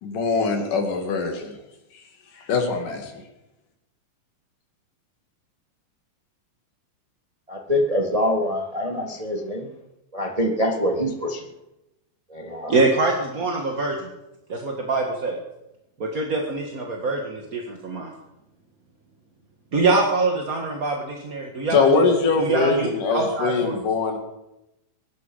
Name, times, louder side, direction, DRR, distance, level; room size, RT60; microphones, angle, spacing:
voice 1, 0.0-1.6 2.4-3.2 21.7-24.2, left 4 dB, 80° left, 3 dB, 4.0 m, -22 dB
voice 2, 7.5-9.7 10.1-11.4 12.3-12.8, left 1 dB, 70° right, 2 dB, 0.3 m, -24 dB
voice 3, 12.7-14.1 14.5-15.3 16.0-18.1 19.7-22.1 22.4-23.8, right 3 dB, 35° right, 1 dB, 1.5 m, -24 dB
22.5 x 12.0 x 5.4 m, 0.93 s
omnidirectional pair, 3.7 m